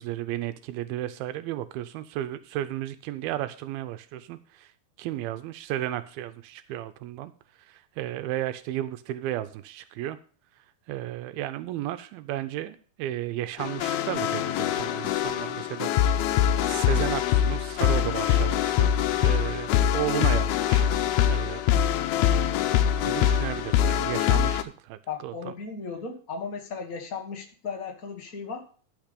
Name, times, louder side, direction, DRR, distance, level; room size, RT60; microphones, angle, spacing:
voice 1, 0.0-4.7 5.0-7.3 7.7-10.2 10.9-15.9 16.2-20.9 21.3-21.6 23.0-25.5, right 13 dB, 85° right, 11 dB, 2.5 m, -34 dB
sound 1, 13.6-24.6, left 10 dB, 90° left, 2.6 m, -24 dB
voice 2, 25.1-28.6, left 5 dB, 70° left, 2 dB, 0.8 m, -36 dB
12.0 x 5.9 x 5.1 m, 0.42 s
omnidirectional pair, 4.3 m